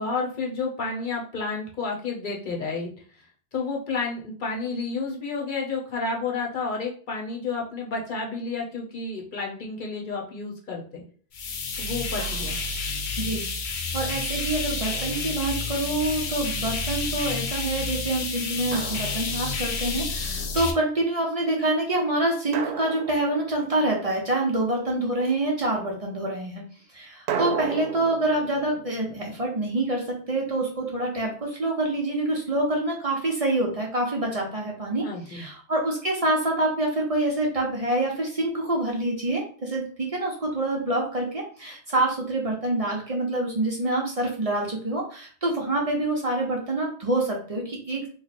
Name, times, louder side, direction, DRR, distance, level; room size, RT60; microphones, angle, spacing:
voice 1, 0.0-2.9 3.5-11.0 11.8-12.6 35.0-35.5, left 4 dB, 55° left, -1 dB, 0.8 m, -30 dB
sound 1, 11.3-20.7, left 4 dB, 85° left, 0.9 m, -30 dB
Drum, 12.2-12.9 14.9-15.9 18.7-19.9 22.5-24.2 27.3-30.3, right 6 dB, 85° right, 0.8 m, -36 dB
voice 2, 13.2-13.5 13.9-26.6 26.9-48.1, right 2 dB, 40° right, -1 dB, 0.7 m, -26 dB
3.1 x 2.1 x 4.0 m, 0.44 s
omnidirectional pair, 1.1 m